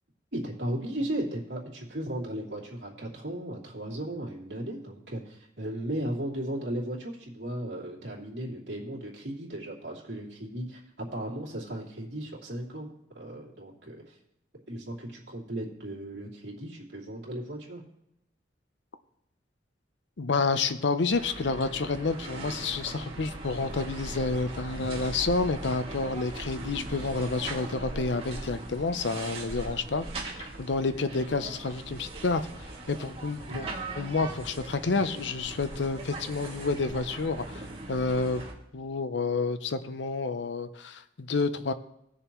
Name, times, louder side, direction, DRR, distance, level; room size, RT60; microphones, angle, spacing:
voice 1, 0.3-12.9 13.1-14.2 14.7-17.8 33.4-33.6, right 1 dB, 65° right, -4 dB, 2.8 m, -36 dB
voice 2, 20.2-30.1 30.4-32.4 32.9-33.7 34.0-37.6 37.9-38.4 38.7-41.7, left 3 dB, 70° left, 11 dB, 0.6 m, -29 dB
sound 1, 21.1-38.5, right 2 dB, 30° right, 2.2 m, -40 dB
18.5 x 6.7 x 3.0 m, 0.82 s
head